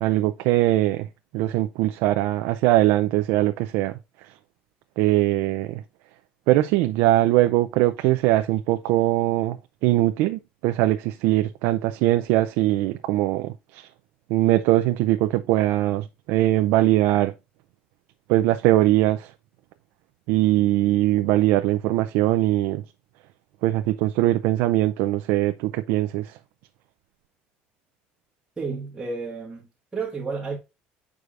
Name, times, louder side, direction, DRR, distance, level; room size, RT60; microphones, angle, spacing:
voice 1, 0.0-1.1 1.3-4.0 5.0-5.8 6.5-13.9 14.3-17.3 18.3-19.3 20.3-22.8 23.6-26.4, right 15 dB, 80° right, 0.4 m, -21 dB
voice 2, 28.6-30.6, right 4 dB, 10° right, 1.4 m, -31 dB
8.0 x 4.9 x 2.5 m
cardioid pair, 160°, 4 cm